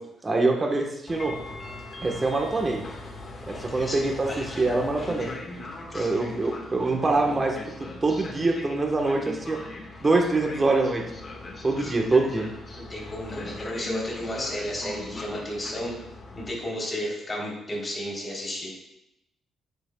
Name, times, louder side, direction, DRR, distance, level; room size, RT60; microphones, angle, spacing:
voice 1, 0.2-1.3 2.0-2.8 3.5-5.3 5.9-9.6 10.0-11.0 11.6-12.5, right 3 dB, 25° right, 1 dB, 1.2 m, -24 dB
Train, 1.1-16.5, left 2 dB, 40° left, 1.6 m, -40 dB
voice 2, 4.3-4.8 5.9-6.1 11.8-11.9 12.7-15.9 16.3-18.7, equal, 25° left, -2 dB, 3.4 m, -33 dB
10.5 x 9.0 x 2.3 m, 0.86 s
cardioid pair, 90°, 0 cm